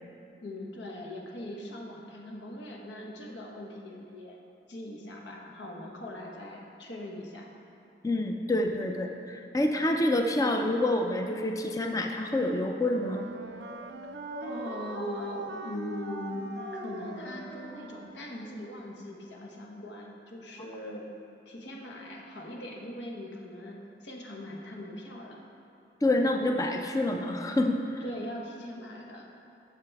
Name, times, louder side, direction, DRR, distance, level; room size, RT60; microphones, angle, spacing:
voice 1, 0.3-4.4 4.7-7.5 14.4-21.0 21.4-25.4 28.0-29.3, left 1 dB, 80° left, -1 dB, 1.1 m, -41 dB
voice 2, 8.0-13.3 26.0-28.0, left 1 dB, 20° left, 4 dB, 0.4 m, -27 dB
Wind instrument woodwind instrument, 12.7-18.3, right 5 dB, 70° right, 0.4 m, -44 dB
Dog, 13.1-18.7, equal, 55° left, 2.0 m, -42 dB
11.5 x 6.7 x 3.5 m, 2.7 s
head